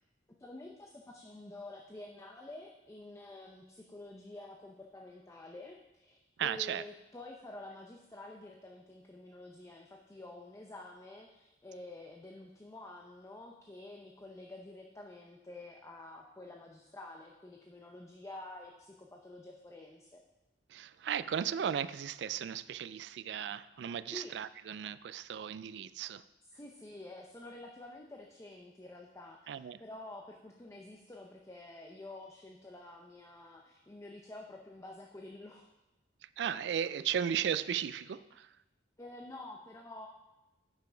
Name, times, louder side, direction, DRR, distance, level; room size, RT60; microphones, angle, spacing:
voice 1, 0.4-20.2 24.1-24.3 26.4-35.7 39.0-40.1, left 2 dB, 15° left, 0.6 m, -49 dB
voice 2, 6.4-6.8 20.7-26.2 29.5-29.8 36.4-38.5, right 8 dB, 65° right, 0.3 m, -35 dB
8.9 x 5.8 x 5.0 m
head